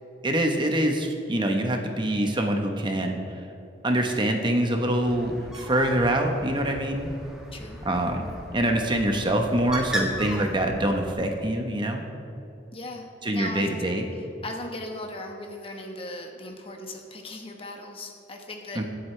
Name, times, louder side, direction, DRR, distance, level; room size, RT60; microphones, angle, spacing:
voice 1, 0.2-3.2 3.8-7.1 7.8-12.0 13.2-14.0 18.7-18.8, right 1 dB, 25° right, 3 dB, 1.0 m, -25 dB
Bird, 5.0-11.1, equal, 5° right, 1.6 m, -36 dB
voice 2, 12.7-13.7 14.2-18.8, left 1 dB, 35° left, 2 dB, 1.3 m, -38 dB
23.0 x 8.0 x 3.3 m, 2.7 s
head